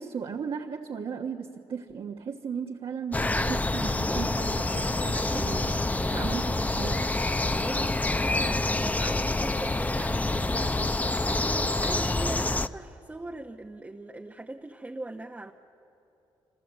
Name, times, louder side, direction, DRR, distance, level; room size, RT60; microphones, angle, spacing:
voice 1, 0.0-6.4 6.7-7.1, right 6 dB, 60° right, 0 dB, 1.3 m, -36 dB
sound 1, 3.1-12.7, left 2 dB, 15° left, 0.7 m, -27 dB
voice 2, 5.1-7.0 7.6-15.5, right 2 dB, 15° right, 2 dB, 0.9 m, -41 dB
sound 2, 5.6-9.0, left 4 dB, 55° left, 2.0 m, -48 dB
28.0 x 25.5 x 8.0 m, 3.0 s
cardioid pair, 90°, 10 cm